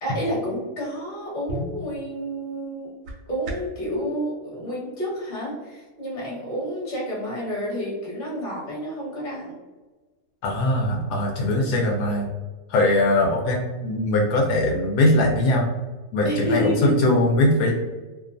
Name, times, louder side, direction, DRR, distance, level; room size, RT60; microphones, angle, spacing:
voice 1, 0.0-2.9 3.3-9.5 16.2-17.0, equal, 35° left, -6 dB, 1.0 m, -29 dB
sound 1, 1.0-3.9, equal, 70° right, 0.8 m, -37 dB
voice 2, 10.4-12.3 12.7-15.7 16.1-17.7, left 1 dB, 80° left, -1 dB, 1.1 m, -21 dB
2.7 x 2.2 x 2.4 m, 1.3 s
omnidirectional pair, 1.7 m